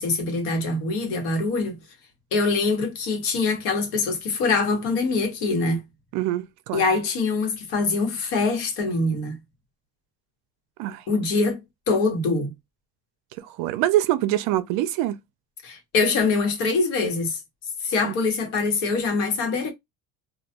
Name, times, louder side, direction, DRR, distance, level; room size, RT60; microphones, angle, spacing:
voice 1, 0.0-1.8 2.3-5.8 6.7-9.4 11.1-12.5 15.6-17.4 17.8-19.7, left 3 dB, 85° left, 1.1 m, -24 dB
voice 2, 6.1-6.8 10.8-11.0 13.4-15.2 18.0-18.1, right 14 dB, 65° right, 0.5 m, -24 dB
2.2 x 2.2 x 2.8 m
cardioid pair, 145°, 35 cm